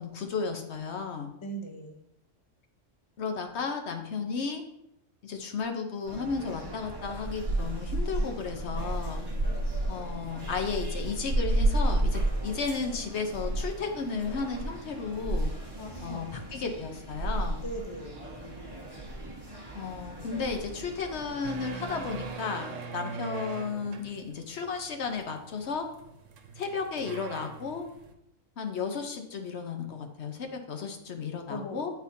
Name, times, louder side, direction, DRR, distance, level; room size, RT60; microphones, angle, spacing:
voice 1, 0.0-1.3 3.2-4.6 5.2-9.2 9.9-15.5 16.0-17.6 19.7-25.9 26.6-27.9 28.6-31.9, left 5 dB, 65° left, 4 dB, 1.0 m, -34 dB
voice 2, 1.4-2.0 15.8-16.3 17.6-18.2 31.5-31.9, right 1 dB, 30° left, 3 dB, 0.6 m, -39 dB
sound 1, 6.0-22.3, right 1 dB, 20° right, 1.1 m, -33 dB
sound 2, 21.4-28.1, right 5 dB, 80° right, 1.1 m, -42 dB
9.6 x 4.2 x 2.7 m, 0.79 s
omnidirectional pair, 1.3 m